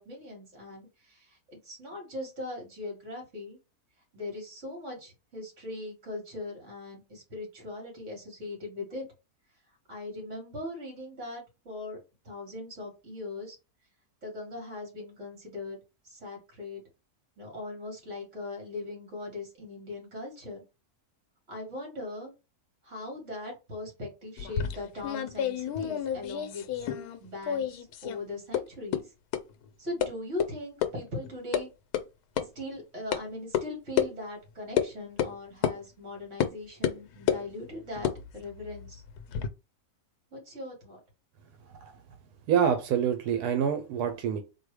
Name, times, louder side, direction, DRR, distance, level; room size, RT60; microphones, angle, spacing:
voice 1, 0.0-3.6 4.1-9.0 9.9-12.0 12.2-13.6 14.2-15.8 16.0-16.8 17.4-20.6 21.5-22.3 22.8-26.7 27.2-29.1 29.8-31.7 32.4-39.0 40.3-41.0, left 2 dB, 50° right, 2.5 m, -40 dB
sound 1, 24.4-27.2 27.4-28.2 28.5-28.6 28.9-29.0 29.3-29.4 30.0-30.1 30.4-30.5 30.8-30.9 31.2-31.6 31.9-32.0 32.4-32.5 33.1-33.2 33.5-33.6 34.0-34.1 34.8-34.9 35.2-35.3 35.6-35.8 36.4-36.5 36.8-37.4 37.9-39.5, left 9 dB, 80° left, 1.1 m, -29 dB
voice 2, 42.5-44.4, right 8 dB, 90° right, 1.3 m, -26 dB
3.9 x 2.7 x 4.8 m
omnidirectional pair, 1.6 m